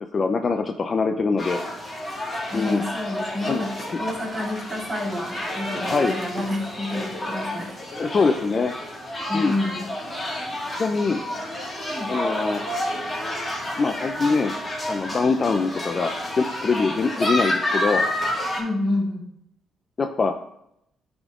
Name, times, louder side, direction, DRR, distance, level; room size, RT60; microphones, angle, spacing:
voice 1, 0.1-1.6 2.5-2.9 3.5-3.6 3.9-4.0 5.8-6.1 7.9-8.7 9.3-9.6 10.7-11.2 12.1-12.6 13.8-14.6 14.9-16.1 16.4-18.0 20.0-20.3, left 4 dB, 40° left, 6 dB, 0.5 m, -23 dB
sound 1, 1.4-18.6, left 1 dB, 20° left, 2.1 m, -30 dB
voice 2, 2.5-7.8 9.3-9.9 11.9-12.1 18.6-19.2, left 1 dB, 25° right, -2 dB, 2.6 m, -29 dB
9.6 x 3.6 x 3.6 m, 0.77 s
cardioid pair, 90°, 0 cm